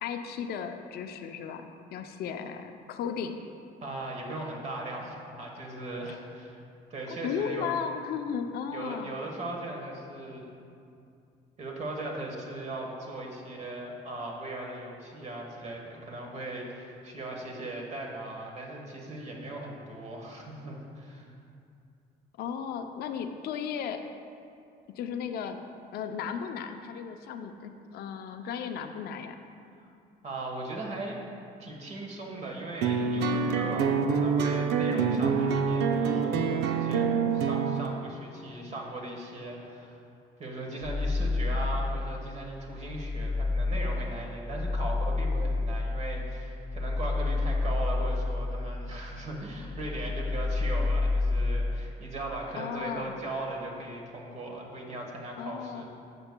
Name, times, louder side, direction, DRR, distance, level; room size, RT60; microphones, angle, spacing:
voice 1, 0.0-3.4 6.1-6.2 7.1-9.1 22.4-24.0 24.9-25.7 25.9-29.4 52.6-53.1 55.4-55.8, left 7 dB, 70° left, 7 dB, 0.5 m, -35 dB
voice 2, 3.8-6.6 6.9-7.7 8.7-10.5 11.6-21.3 29.8-29.9 30.2-31.2 31.6-40.0 40.4-55.8, right 2 dB, 40° right, -1 dB, 1.2 m, -38 dB
sound 1, 32.8-37.9, right 5 dB, 80° right, 0.5 m, -26 dB
sound 2, 40.8-42.3 42.7-49.2 49.5-51.8, left 3 dB, 45° left, 0.9 m, -29 dB
11.0 x 6.8 x 2.2 m, 2.5 s
cardioid pair, 110°, 17 cm